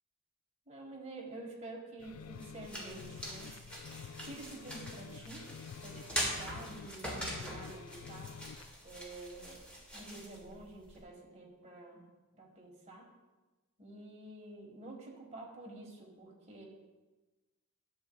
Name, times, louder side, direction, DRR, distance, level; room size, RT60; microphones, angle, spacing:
voice 1, 0.7-3.5 4.2-5.4 5.8-8.3 8.8-9.6 9.9-12.0 12.3-13.1 13.8-16.6, right 2 dB, 35° right, -1 dB, 1.5 m, -49 dB
sound 1, 2.0-8.7, left 7 dB, 80° left, 0.3 m, -49 dB
sound 2, 2.0-11.0, equal, 5° left, 1.8 m, -43 dB
11.5 x 7.7 x 2.3 m, 1.2 s
head